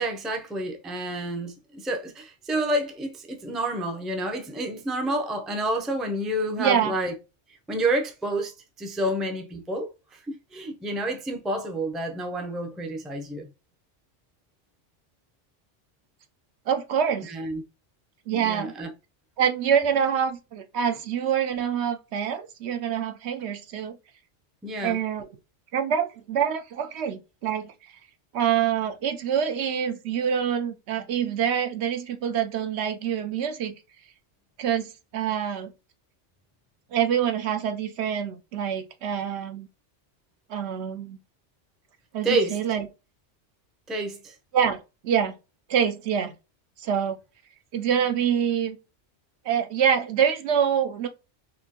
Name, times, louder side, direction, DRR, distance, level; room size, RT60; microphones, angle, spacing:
voice 1, 0.0-7.1 7.7-13.5 17.2-17.6 18.3-18.9 24.6-25.0 42.2-42.6 43.9-44.4, right 1 dB, ahead, 0.4 m, -29 dB
voice 2, 6.6-6.9 16.7-17.3 18.3-18.7 19.4-24.0 24.8-25.3 25.7-27.7 28.3-33.7 34.6-35.7 36.9-39.7 40.5-41.2 42.1-42.9 44.5-44.8 45.0-45.3 45.7-46.3 46.8-47.2 47.7-48.8 49.4-51.1, right 8 dB, 70° right, 0.8 m, -26 dB
4.2 x 2.8 x 2.8 m
omnidirectional pair, 1.2 m